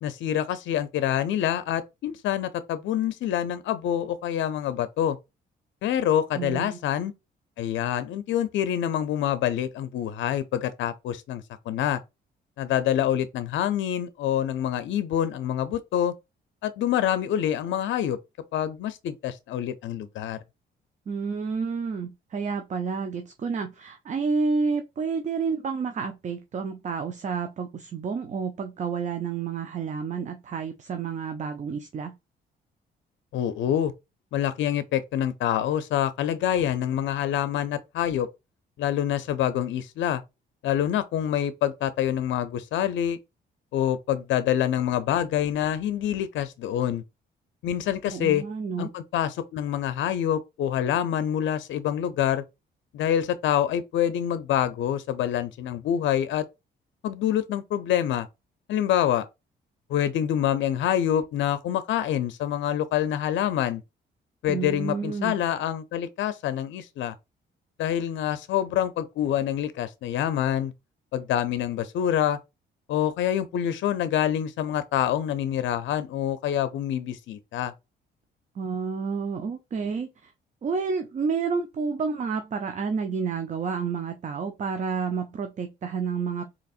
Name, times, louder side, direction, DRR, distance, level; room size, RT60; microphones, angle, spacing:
voice 1, 0.0-5.2 5.8-7.1 7.6-12.0 12.6-16.1 16.6-18.2 18.5-20.4 33.3-33.9 34.3-38.3 38.8-40.2 40.6-43.2 43.7-47.0 47.6-48.4 48.8-52.4 52.9-56.4 57.0-58.3 58.7-59.3 59.9-63.8 64.4-67.1 67.8-70.7 71.1-72.4 72.9-77.7, left 10 dB, 70° left, 0.5 m, -26 dB
voice 2, 6.4-6.8 21.1-32.1 48.1-48.9 64.5-65.4 78.6-80.3 80.6-86.4, right 5 dB, 40° right, 0.5 m, -30 dB
4.1 x 2.9 x 2.4 m
cardioid pair, 90°, 20 cm